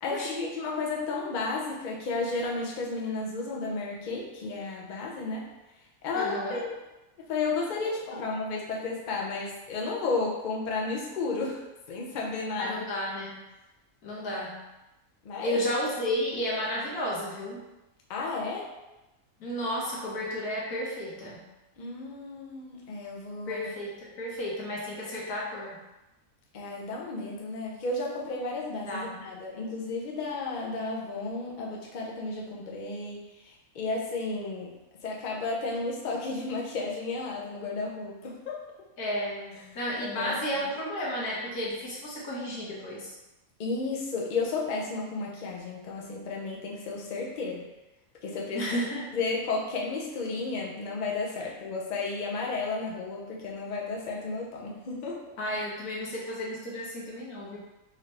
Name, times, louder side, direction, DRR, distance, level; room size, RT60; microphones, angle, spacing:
voice 1, 0.0-5.4 6.0-6.7 7.3-11.6 11.9-12.8 14.2-14.4 15.2-15.6 18.1-18.7 21.8-23.7 26.5-34.8 35.0-38.6 40.0-40.3 43.6-47.6 48.2-48.8 49.1-55.2, left 3 dB, 45° left, -2 dB, 0.6 m, -33 dB
voice 2, 6.1-6.6 8.1-8.2 12.6-13.4 14.0-14.6 15.4-17.6 19.4-21.4 23.5-25.8 28.9-29.2 39.0-43.1 48.5-49.2 55.4-57.6, equal, 90° left, -4 dB, 1.5 m, -32 dB
4.2 x 2.7 x 3.2 m, 1.0 s
omnidirectional pair, 1.6 m